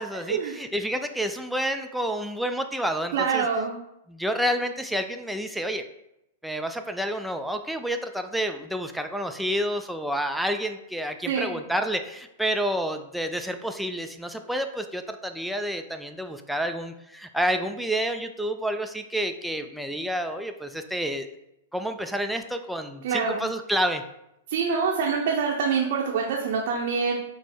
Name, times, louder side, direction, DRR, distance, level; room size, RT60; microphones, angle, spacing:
voice 1, 0.0-3.5 4.1-5.8 6.4-21.3 21.7-24.0, equal, ahead, 6 dB, 0.3 m, -29 dB
voice 2, 3.1-3.8 11.3-11.5 23.0-23.4 24.5-27.1, right 5 dB, 55° right, -2 dB, 0.6 m, -25 dB
4.3 x 2.0 x 4.3 m, 0.84 s
hypercardioid pair, 105°, 0 cm